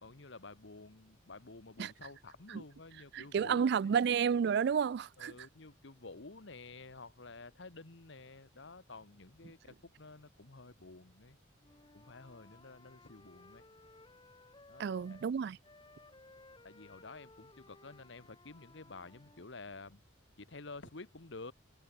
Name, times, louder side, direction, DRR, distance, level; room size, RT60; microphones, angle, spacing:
voice 1, 0.0-4.0 5.2-11.4 11.9-13.6 14.7-15.2 16.6-20.0 20.4-21.5, left 3 dB, 60° left, 1.3 m, -51 dB
voice 2, 3.1-5.3 14.8-15.6, right 7 dB, 55° right, 0.3 m, -30 dB
Wind instrument woodwind instrument, 11.6-15.3 15.6-19.5, left 2 dB, 25° left, 1.8 m, -60 dB
head